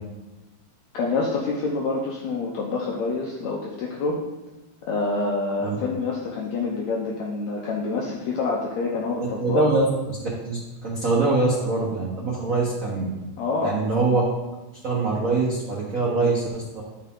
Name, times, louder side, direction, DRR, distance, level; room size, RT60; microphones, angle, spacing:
voice 1, 0.9-4.2 4.9-9.6 13.4-13.8, left 3 dB, 70° left, -2 dB, 1.9 m, -27 dB
voice 2, 9.4-9.8 10.2-13.1 13.6-14.2 14.8-16.8, right 3 dB, 75° right, -5 dB, 0.7 m, -23 dB
11.5 x 4.7 x 3.7 m, 1.1 s
omnidirectional pair, 3.6 m